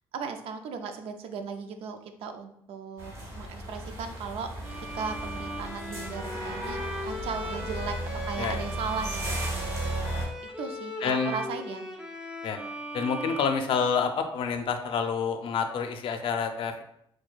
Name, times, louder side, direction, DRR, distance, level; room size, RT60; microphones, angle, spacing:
voice 1, 0.1-4.5 4.9-7.9 8.2-9.7 10.6-11.8, right 5 dB, 85° right, 7 dB, 0.4 m, -37 dB
sound 1, 3.0-10.3, equal, 30° right, 1.0 m, -35 dB
Bowed string instrument, 4.6-14.3, equal, 5° right, 0.5 m, -38 dB
voice 2, 11.0-11.3 12.4-12.6 12.9-16.8, left 6 dB, 70° left, 6 dB, 0.5 m, -28 dB
6.0 x 2.2 x 2.3 m, 0.72 s
cardioid pair, 115°, 10 cm